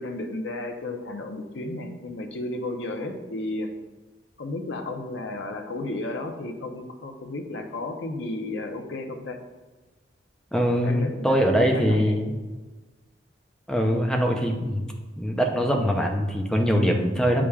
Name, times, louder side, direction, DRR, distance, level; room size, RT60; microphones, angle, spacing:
voice 1, 0.0-3.7 4.4-9.4 10.8-12.2, left 2 dB, 80° left, 4 dB, 0.7 m, -33 dB
voice 2, 10.5-12.4 13.7-14.8 15.2-17.4, equal, 5° left, 2 dB, 0.6 m, -23 dB
8.5 x 4.9 x 2.4 m, 1.2 s
head